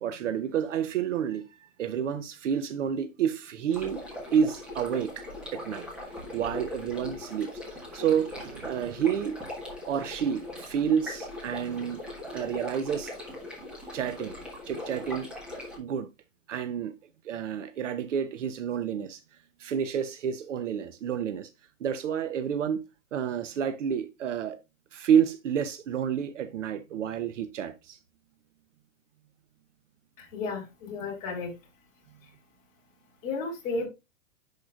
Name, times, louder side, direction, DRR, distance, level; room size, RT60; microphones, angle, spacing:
voice 1, 0.0-1.4 1.8-4.0 4.3-5.3 5.5-5.9 6.3-7.5 7.9-9.4 9.9-12.0 12.3-13.1 13.9-14.4 14.7-15.3 15.8-16.1 16.5-16.9 17.2-19.2 19.6-21.5 21.8-22.8 23.1-24.6 24.9-28.0, right 8 dB, 65° right, 0.8 m, -29 dB
sound 1, 3.7-15.8, left 2 dB, ahead, 1.2 m, -40 dB
voice 2, 30.2-31.5 32.2-32.3 33.2-33.9, left 3 dB, 20° left, 2.7 m, -33 dB
10.5 x 4.9 x 2.4 m
hypercardioid pair, 170°, 40 cm